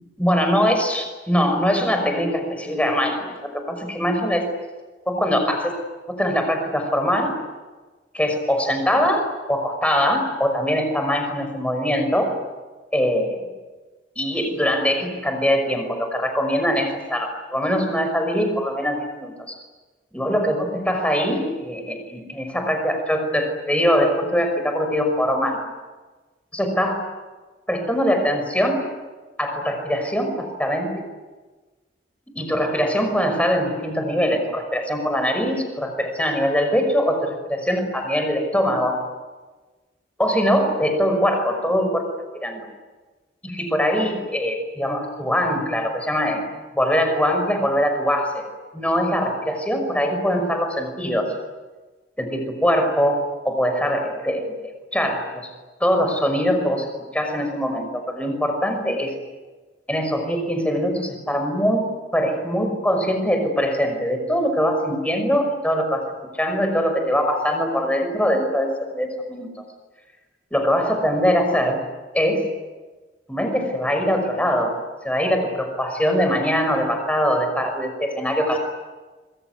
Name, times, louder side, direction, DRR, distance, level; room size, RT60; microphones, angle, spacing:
voice 1, 0.2-4.5 5.1-5.8 6.1-7.3 8.1-12.3 12.9-13.4 14.2-19.6 20.1-25.6 26.5-27.0 27.7-28.8 29.4-31.0 32.3-39.0 40.2-42.1 42.4-42.7 43.4-46.4 46.7-48.4 48.7-51.3 52.2-54.5 54.9-55.5 55.8-56.9 57.1-59.1 59.9-66.0 66.3-69.5 70.5-71.8 72.1-72.4 73.3-74.7 75.0-78.6, equal, 5° left, 5 dB, 5.8 m, -22 dB
26.5 x 22.5 x 9.6 m, 1.3 s
head